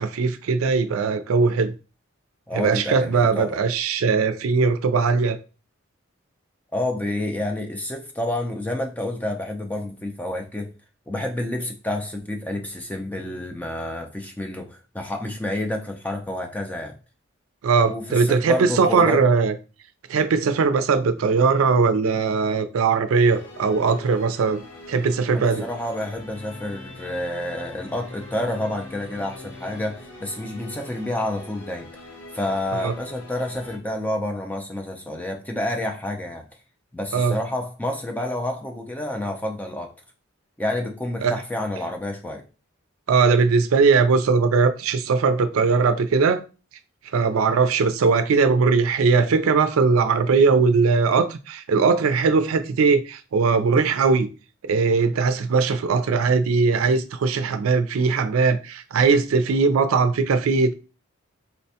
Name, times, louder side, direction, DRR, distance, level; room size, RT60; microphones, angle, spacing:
voice 1, 0.0-1.7 2.5-5.4 17.6-19.5 20.1-24.6 24.9-25.6 32.7-32.9 37.1-37.4 41.2-41.3 43.1-46.4 47.1-54.3 54.6-60.7, right 4 dB, 85° right, 0.4 m, -20 dB
voice 2, 2.5-3.6 6.7-10.7 11.1-17.0 17.9-19.2 25.3-32.0 32.3-36.5 36.9-39.9 40.6-42.4, left 1 dB, 5° left, 0.3 m, -29 dB
sound 1, 23.1-33.8, left 2 dB, 75° left, 1.0 m, -42 dB
4.1 x 2.1 x 2.7 m
head